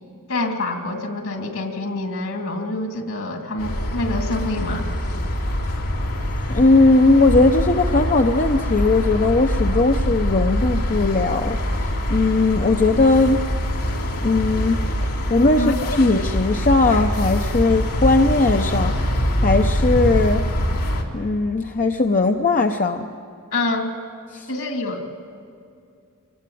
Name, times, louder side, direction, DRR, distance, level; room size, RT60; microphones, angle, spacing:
voice 1, 0.3-4.9 15.6-15.8 23.5-23.9 24.5-25.1, left 2 dB, 65° left, 4 dB, 2.6 m, -26 dB
sound 1, 3.6-21.0, equal, 85° left, 2.9 m, -24 dB
voice 2, 6.5-13.4 14.2-14.8 15.3-19.0 19.4-20.4 21.1-23.1 24.3-24.5, left 3 dB, 40° left, 4 dB, 0.8 m, -18 dB
24.5 x 20.5 x 9.2 m, 2.5 s
head